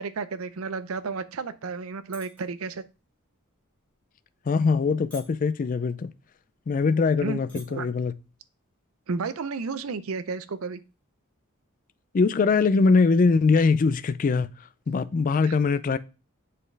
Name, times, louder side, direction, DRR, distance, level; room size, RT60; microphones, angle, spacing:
voice 1, 0.0-2.8 7.2-7.4 7.7-7.9 9.1-10.8 15.4-15.6, right 4 dB, 80° right, 0.5 m, -32 dB
sound 1, 2.1-2.4 2.8-3.1 3.7-3.9 4.6-4.8 5.1-5.6 6.3-6.4 6.7-6.8 7.3-7.6 8.0-8.2, left 2 dB, 5° left, 1.6 m, -46 dB
voice 2, 4.5-6.1 6.7-8.1 12.1-14.5 14.9-16.0, left 4 dB, 40° left, 0.3 m, -22 dB
7.4 x 4.2 x 3.3 m
head